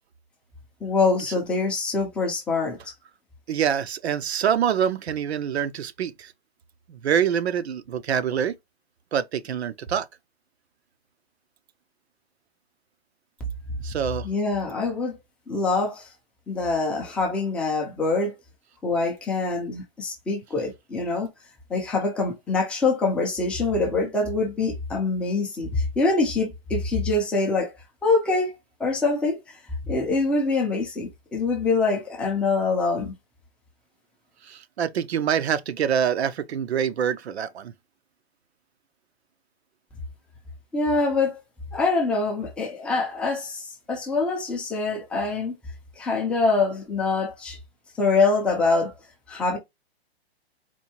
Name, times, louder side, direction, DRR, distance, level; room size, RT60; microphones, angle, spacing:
voice 1, 0.8-2.8 14.2-15.2 15.5-16.1 16.5-18.3 18.8-21.3 21.7-27.7 28.0-28.5 28.8-29.4 29.9-33.1 40.7-41.4 41.7-45.5 46.0-47.6 48.0-48.9 49.3-49.6, left 3 dB, 5° left, 0.4 m, -24 dB
voice 2, 3.5-6.3 6.9-8.5 9.1-10.1 13.8-14.3 34.5-37.7, right 8 dB, 80° right, 0.7 m, -25 dB
4.3 x 2.6 x 2.9 m
hypercardioid pair, 155°, 32 cm